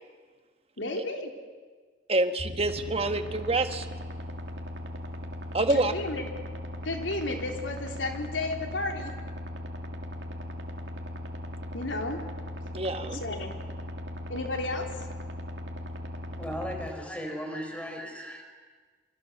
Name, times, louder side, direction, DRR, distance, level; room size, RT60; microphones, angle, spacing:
voice 1, 0.8-1.3 5.7-6.3 6.8-9.1 11.7-12.2 13.1-13.5 14.3-14.9, left 2 dB, 80° left, 3 dB, 3.7 m, -32 dB
voice 2, 2.1-3.9 5.5-5.9 12.7-13.2, right 2 dB, 30° right, 8 dB, 1.4 m, -26 dB
sound 1, 2.4-16.9, equal, 65° right, 2.9 m, -38 dB
voice 3, 16.4-18.4, equal, 5° left, 3 dB, 4.5 m, -36 dB
28.5 x 25.5 x 6.9 m, 1.5 s
head